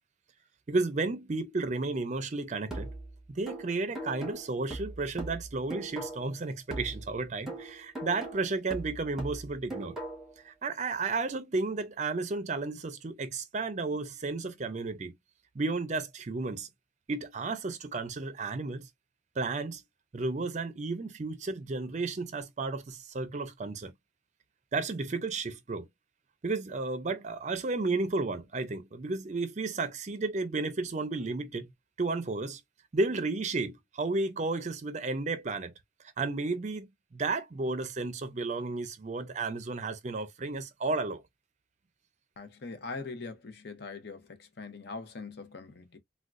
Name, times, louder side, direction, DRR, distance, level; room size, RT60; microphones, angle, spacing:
voice 1, 0.7-2.9 3.3-10.0 10.4-15.1 15.5-16.7 17.1-18.9 19.4-19.8 20.1-23.9 24.7-25.9 26.4-31.7 32.0-32.6 32.9-35.7 36.2-41.2, right 3 dB, 40° right, 0.5 m, -33 dB
sound 1, 2.7-6.4 6.7-10.4, right 2 dB, ahead, 1.0 m, -40 dB
voice 2, 42.4-46.0, left 3 dB, 55° left, 0.7 m, -42 dB
3.5 x 2.3 x 2.4 m
head